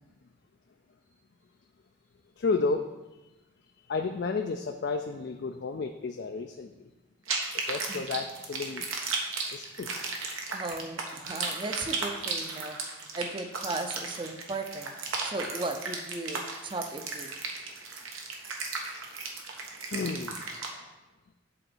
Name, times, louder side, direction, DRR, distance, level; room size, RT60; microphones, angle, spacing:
voice 1, 2.4-2.8 3.9-6.7 7.7-8.9 9.5-9.9 19.9-20.4, left 4 dB, 55° left, 5 dB, 0.4 m, -31 dB
sound 1, 7.3-20.7, right 4 dB, 85° right, 1.2 m, -35 dB
voice 2, 10.5-12.8 13.1-17.3, right 2 dB, 25° right, 6 dB, 0.6 m, -36 dB
7.8 x 4.0 x 6.1 m, 1.1 s
head